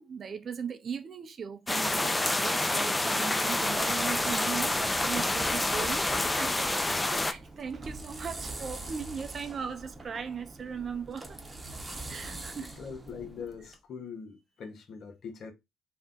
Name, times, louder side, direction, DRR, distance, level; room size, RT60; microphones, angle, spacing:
voice 1, 0.0-11.4 12.1-12.7, right 6 dB, 50° right, 0.4 m, -38 dB
sound 1, 1.7-7.3, left 2 dB, 15° left, 0.5 m, -28 dB
sound 2, 3.5-13.8, right 2 dB, 25° right, 0.8 m, -43 dB
voice 2, 12.6-15.5, left 6 dB, 60° left, 0.8 m, -42 dB
2.6 x 2.2 x 3.7 m
hypercardioid pair, 55°, 0 cm